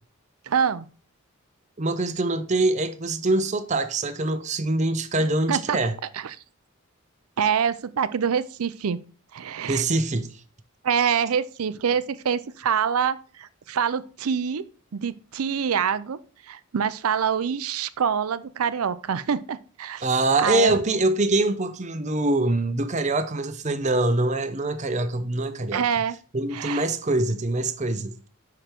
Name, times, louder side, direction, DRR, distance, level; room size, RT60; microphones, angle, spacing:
voice 1, 0.5-0.9 5.5-5.8 6.1-6.3 7.4-9.0 9.3-9.8 10.8-14.6 14.9-16.2 16.5-20.1 20.4-20.8 25.7-26.2 26.5-26.9, right 7 dB, 90° right, 0.5 m, -25 dB
voice 2, 1.8-6.0 9.7-10.3 20.0-25.8 26.3-28.1, right 2 dB, 35° right, 0.6 m, -24 dB
5.9 x 5.0 x 4.4 m
head